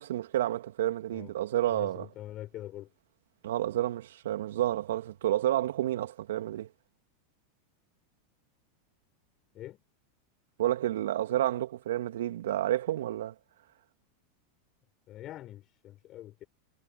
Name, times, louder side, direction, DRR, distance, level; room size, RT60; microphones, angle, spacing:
voice 1, 0.0-2.1 3.4-6.7 10.6-13.3, right 13 dB, 70° right, 3.0 m, -30 dB
voice 2, 1.7-2.9 9.5-9.8 15.1-16.4, left 14 dB, 40° left, 7.2 m, -44 dB
hypercardioid pair, 95°, 0 cm